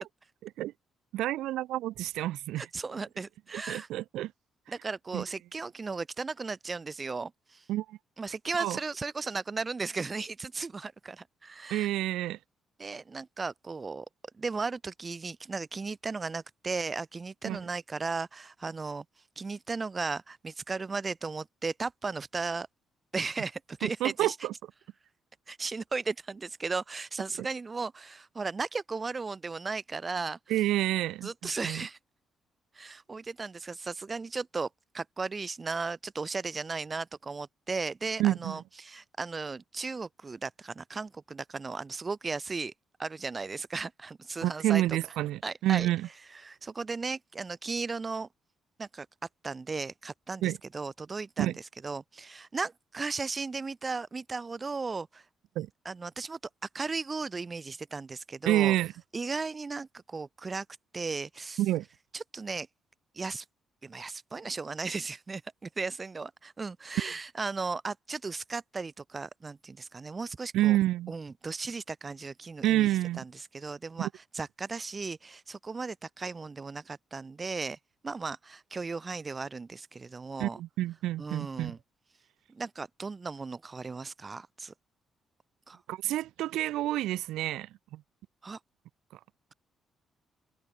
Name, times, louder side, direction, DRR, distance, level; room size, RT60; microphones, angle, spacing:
voice 1, 1.1-2.7 3.5-4.3 5.1-5.2 7.7-8.0 8.6-8.8 11.7-12.4 17.4-17.6 23.8-24.5 30.5-31.8 38.2-38.6 44.4-46.1 50.4-50.6 51.4-51.5 55.6-55.7 58.4-58.9 61.6-61.8 67.0-67.1 70.5-71.1 72.6-73.2 74.0-74.1 80.4-81.7 85.9-88.0, right 15 dB, 85° right, 0.9 m, -28 dB
voice 2, 2.6-3.9 4.7-7.6 8.2-11.9 12.8-14.1 14.4-19.0 19.4-22.7 23.1-24.4 25.5-30.4 31.2-32.0 32.7-34.7 34.9-42.7 43.0-45.0 45.4-45.9 46.3-48.3 48.8-49.1 49.4-55.2 55.9-56.4 56.7-58.8 59.1-60.7 60.9-61.6 62.1-62.7 63.1-63.4 63.8-70.8 71.1-72.9 73.2-77.8 78.0-80.6 81.2-81.8 82.5-84.7 85.7-85.8 88.4-88.6, right 4 dB, 30° right, 0.4 m, -36 dB
cardioid pair, 90°, 0 cm